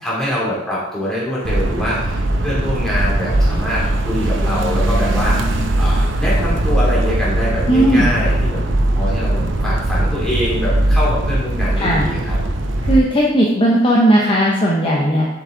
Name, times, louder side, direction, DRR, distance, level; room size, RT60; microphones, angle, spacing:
voice 1, 0.0-8.6 8.9-12.4, equal, 5° left, -8 dB, 2.8 m, -24 dB
sound 1, 1.4-13.0, right 1 dB, 80° right, 0.8 m, -19 dB
voice 2, 7.7-8.1 11.8-12.1 12.8-15.3, right 1 dB, 25° left, -3 dB, 0.9 m, -15 dB
7.2 x 6.1 x 3.9 m, 0.95 s
head